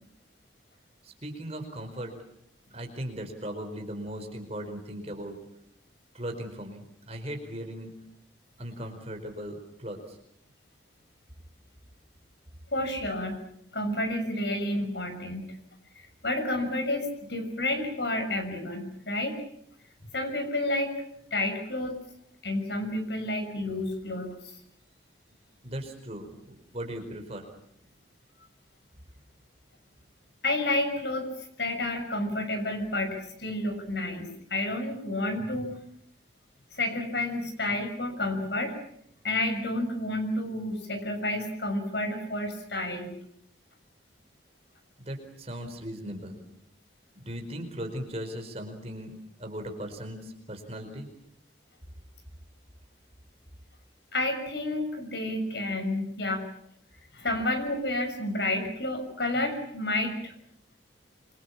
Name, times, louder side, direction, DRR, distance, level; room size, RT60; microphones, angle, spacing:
voice 1, 1.0-2.2 2.7-5.4 6.1-7.9 8.6-10.2 25.6-27.5 45.0-46.6 47.1-51.1, equal, 35° right, 5 dB, 4.8 m, -38 dB
voice 2, 12.7-13.4 13.7-15.4 16.2-19.4 20.1-21.0 21.3-22.0 22.4-24.4 30.4-31.3 31.6-35.8 36.7-38.7 39.2-43.1 54.1-56.5 57.1-60.3, left 1 dB, 65° left, 7 dB, 6.3 m, -30 dB
27.0 x 24.5 x 7.3 m, 0.72 s
head